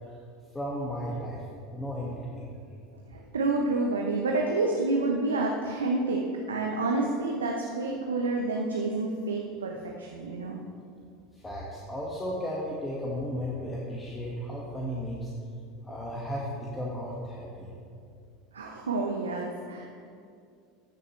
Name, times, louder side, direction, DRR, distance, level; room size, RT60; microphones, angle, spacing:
voice 1, 0.5-1.4 1.7-2.5 11.3-15.3 15.8-17.7, equal, 15° left, -5 dB, 1.5 m, -34 dB
voice 2, 2.9-6.2 6.5-10.6 18.5-19.9, right 3 dB, 85° right, 0 dB, 0.7 m, -29 dB
13.5 x 6.7 x 3.2 m, 2.4 s
hypercardioid pair, 80°, 0 cm